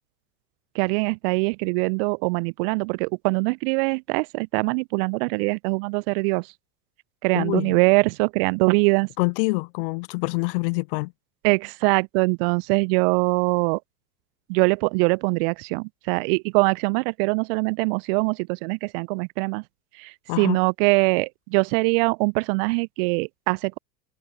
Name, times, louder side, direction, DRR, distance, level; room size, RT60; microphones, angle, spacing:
voice 1, 0.7-6.5 7.2-9.1 11.4-13.8 14.5-19.6 20.0-23.8, right 32 dB, 35° right, 0.5 m, -23 dB
voice 2, 7.3-7.8 9.2-11.1 20.3-20.6, left 27 dB, 35° left, 0.4 m, -26 dB
figure-of-eight pair, 85°, 50 cm